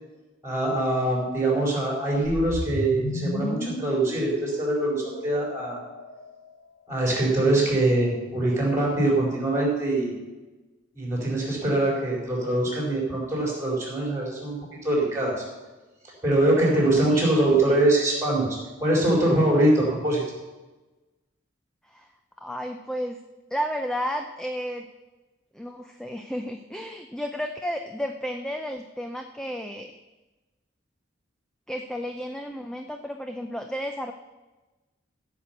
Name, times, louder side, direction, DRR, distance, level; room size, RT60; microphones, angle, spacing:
voice 1, 0.4-5.8 6.9-10.1 10.9-15.4 16.2-18.5 18.8-20.2, right 1 dB, 15° right, -2 dB, 4.8 m, -23 dB
sound 1, 2.2-6.5, left 1 dB, 60° left, 1.2 m, -33 dB
voice 2, 17.1-17.4 17.6-17.8 21.9-22.1 22.4-23.2 23.5-24.9 25.5-29.9 31.7-34.1, equal, 5° left, 5 dB, 0.5 m, -32 dB
15.5 x 6.0 x 8.1 m, 1.2 s
head